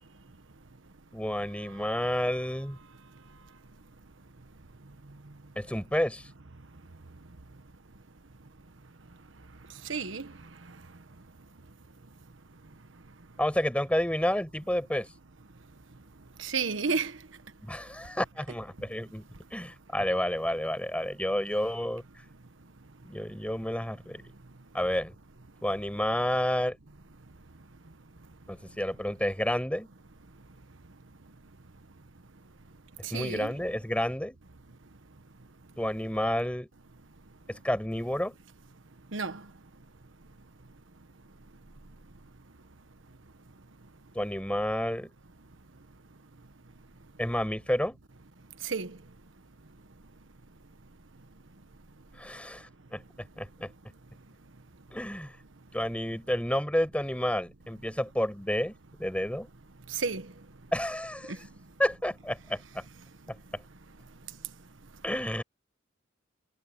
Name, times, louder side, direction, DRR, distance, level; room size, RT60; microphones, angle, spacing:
voice 1, 1.1-2.8 5.6-6.2 13.4-15.1 17.6-19.2 19.5-22.0 23.1-24.2 24.7-25.1 25.6-26.8 28.5-29.9 33.1-34.4 35.8-36.7 37.5-38.3 44.1-45.1 47.2-48.0 52.2-53.0 53.4-53.7 54.9-55.3 55.7-58.7 59.0-59.5 60.7-61.4 61.8-62.8 65.0-65.4, left 1 dB, 5° left, 5.5 m, -30 dB
voice 2, 9.9-10.3 16.4-17.1 33.0-33.5 39.1-39.4 48.6-48.9 59.9-60.3, right 5 dB, 85° right, 1.3 m, -31 dB
head